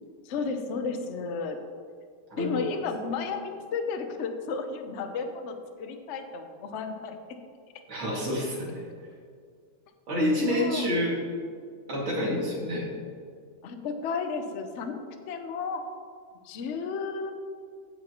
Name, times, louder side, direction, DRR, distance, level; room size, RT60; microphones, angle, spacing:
voice 1, 0.2-1.6 2.4-7.2 10.5-10.9 12.3-12.6 13.6-15.8 16.4-17.3, left 5 dB, 80° left, 6 dB, 0.6 m, -33 dB
voice 2, 7.9-8.8 10.1-11.2 11.9-12.8, equal, 70° right, -5 dB, 3.2 m, -28 dB
15.5 x 5.6 x 3.0 m, 2.1 s
omnidirectional pair, 2.3 m